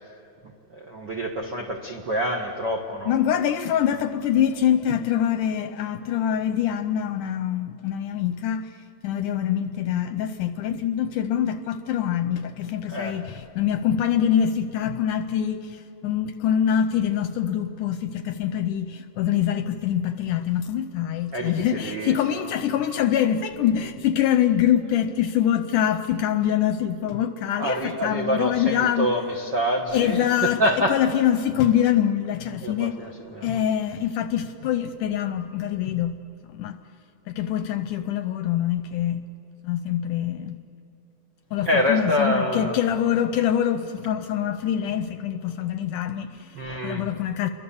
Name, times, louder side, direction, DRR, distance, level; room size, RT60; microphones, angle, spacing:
voice 1, 0.4-3.1 12.9-13.2 21.3-22.5 27.6-31.0 32.6-33.6 41.6-42.7 46.5-47.1, equal, 60° right, 1 dB, 1.2 m, -26 dB
voice 2, 3.1-8.7 9.0-29.1 29.9-30.6 30.9-33.0 33.4-36.2 36.5-36.8 37.3-39.3 39.6-40.6 41.5-46.5 46.8-47.5, left 10 dB, 75° left, 10 dB, 2.0 m, -24 dB
28.5 x 23.0 x 7.1 m, 2.9 s
omnidirectional pair, 4.2 m